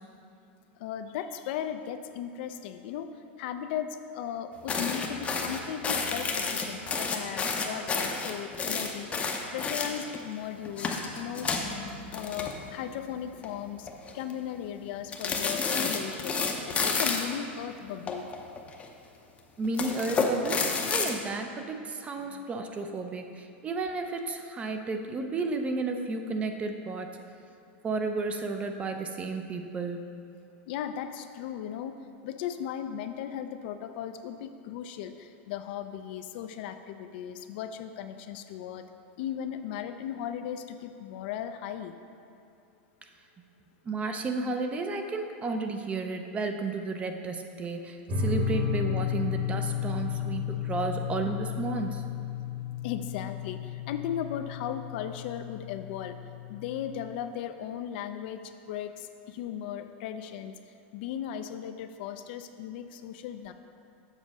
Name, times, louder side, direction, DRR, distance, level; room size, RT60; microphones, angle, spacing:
voice 1, 0.8-3.1 3.4-9.1 9.5-11.5 12.1-13.9 14.1-16.3 16.7-18.3 22.2-22.4 30.7-32.0 32.2-38.9 39.2-42.0 52.8-53.6 53.9-56.2 56.5-58.4 58.7-58.9 59.3-60.5 60.9-63.5, left 9 dB, 60° left, 8 dB, 0.5 m, -36 dB
sound 1, 4.7-10.2 10.6-13.0 13.2-13.5 13.9-14.3 15.1-17.4 18.1-18.9 19.6-21.1, left 4 dB, 20° left, 0.6 m, -30 dB
voice 2, 19.6-27.1 27.8-30.0 43.9-52.0, right 3 dB, 20° right, 5 dB, 0.5 m, -32 dB
sound 2, 48.1-57.1, left 8 dB, 40° right, 1.5 m, -33 dB
7.3 x 3.9 x 6.3 m, 2.6 s
supercardioid pair, 140°, 6 cm